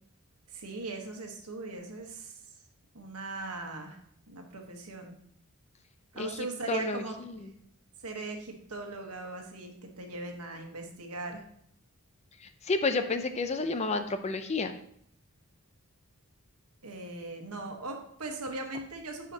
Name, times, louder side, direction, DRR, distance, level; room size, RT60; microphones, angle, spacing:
voice 1, 0.5-2.4 2.9-4.0 4.3-5.2 6.1-7.5 8.0-11.4 16.8-19.3, right 2 dB, 85° right, 3 dB, 1.3 m, -39 dB
voice 2, 6.7-7.5 12.4-14.7, left 3 dB, 30° left, 9 dB, 0.5 m, -31 dB
10.5 x 5.0 x 2.8 m, 0.68 s
head